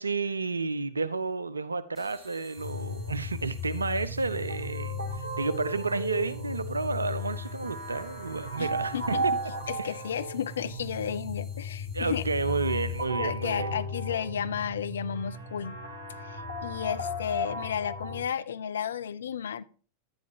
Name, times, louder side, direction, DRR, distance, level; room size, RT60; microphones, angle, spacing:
voice 1, 0.0-9.3 9.8-10.0 11.9-13.8, right 4 dB, 80° right, 0.4 m, -31 dB
sound 1, 1.9-13.4, right 1 dB, 15° right, 2.2 m, -57 dB
sound 2, 2.6-18.2, left 1 dB, 80° left, 1.4 m, -35 dB
voice 2, 8.6-9.2 9.7-12.2 13.2-15.8 16.2-19.6, left 8 dB, 65° left, 0.4 m, -33 dB
10.5 x 9.4 x 2.9 m
figure-of-eight pair, 90°, 0 cm